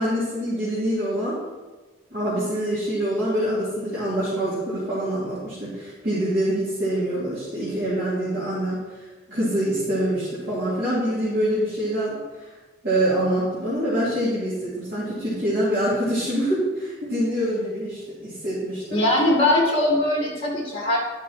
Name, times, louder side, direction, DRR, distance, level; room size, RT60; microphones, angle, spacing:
voice 1, 0.0-1.4 2.1-8.8 9.3-12.2 12.8-19.0, right 1 dB, 50° right, -12 dB, 3.1 m, -25 dB
voice 2, 18.9-21.0, left 1 dB, 30° left, -2 dB, 2.4 m, -21 dB
10.5 x 6.0 x 4.3 m, 1.3 s
head